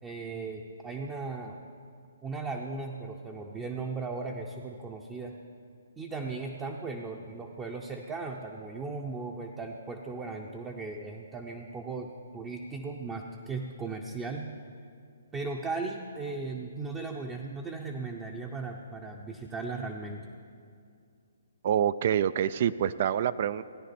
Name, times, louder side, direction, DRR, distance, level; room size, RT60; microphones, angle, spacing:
voice 1, 0.0-1.6 2.2-5.4 6.0-14.5 15.3-20.3, right 3 dB, 15° right, 1 dB, 0.7 m, -37 dB
voice 2, 21.6-23.6, right 9 dB, 50° right, 15 dB, 0.3 m, -26 dB
17.0 x 9.6 x 4.3 m, 2.3 s
hypercardioid pair, 145°, 0 cm